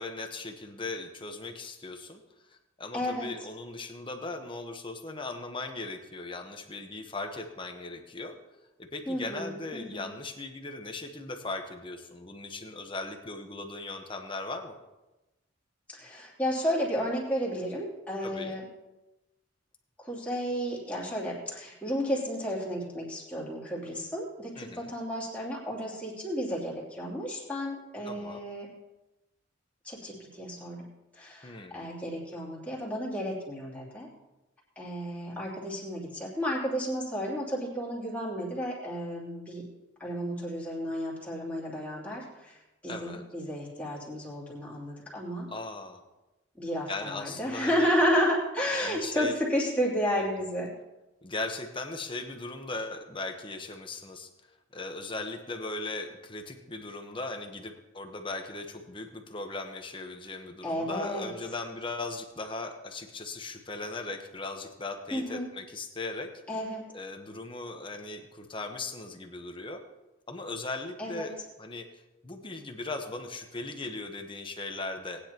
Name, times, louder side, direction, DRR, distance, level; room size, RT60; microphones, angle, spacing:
voice 1, 0.0-2.2 2.5-8.4 8.8-14.7 18.2-18.6 24.6-24.9 28.0-28.4 31.4-31.8 42.9-43.2 45.5-46.0 46.9-47.9 48.8-49.3 50.2-50.3 51.2-54.3 54.7-66.3 66.9-69.8 70.3-75.2, left 3 dB, 25° left, 5 dB, 1.1 m, -38 dB
voice 2, 2.9-3.3 9.1-10.1 15.9-18.6 20.0-28.7 29.8-30.8 31.1-34.1 34.8-39.6 40.0-42.6 42.8-45.5 46.6-50.7 60.6-61.3 65.1-65.5 66.5-66.8 71.0-71.3, equal, 10° left, -6 dB, 3.1 m, -32 dB
19.0 x 9.8 x 3.0 m, 1.0 s
head